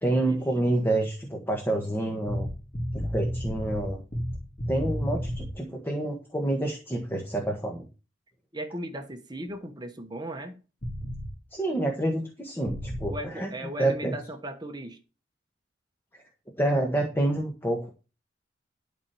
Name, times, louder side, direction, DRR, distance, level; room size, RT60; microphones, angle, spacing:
voice 1, 0.0-2.5 2.9-4.0 4.7-7.9 11.5-13.5 13.8-14.1 16.1-16.2 16.6-17.9, right 1 dB, 10° left, 1.6 m, -28 dB
sound 1, 2.3-5.5 10.8-11.3 12.7-13.1, equal, 40° left, 2.7 m, -31 dB
voice 2, 8.5-10.6 13.1-15.0, right 1 dB, 20° right, 1.2 m, -37 dB
12.0 x 4.5 x 7.0 m
head